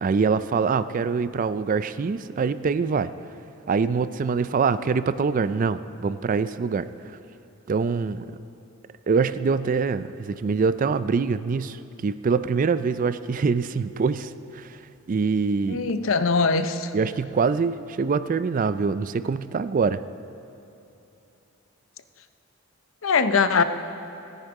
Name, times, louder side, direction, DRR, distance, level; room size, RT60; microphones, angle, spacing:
voice 1, 0.0-3.1 3.7-7.2 7.7-8.2 9.1-14.7 15.1-15.9 16.9-20.0, right 5 dB, 40° right, 14 dB, 0.3 m, -24 dB
voice 2, 15.7-16.9 23.0-23.6, left 4 dB, 75° left, 10 dB, 0.6 m, -21 dB
17.0 x 10.0 x 4.7 m, 2.7 s
head